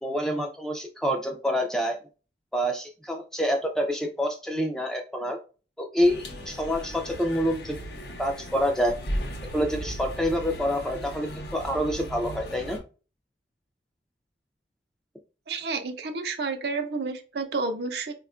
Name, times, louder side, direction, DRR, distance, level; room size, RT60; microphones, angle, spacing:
voice 1, 0.0-2.0 2.5-5.4 5.8-7.8 8.2-9.0 9.5-12.8, equal, 5° left, 3 dB, 0.4 m, -27 dB
sound 1, 6.0-12.8, equal, 70° left, 0.8 m, -36 dB
voice 2, 15.5-18.1, right 4 dB, 70° right, 6 dB, 0.5 m, -30 dB
4.2 x 2.3 x 2.4 m, 0.34 s
head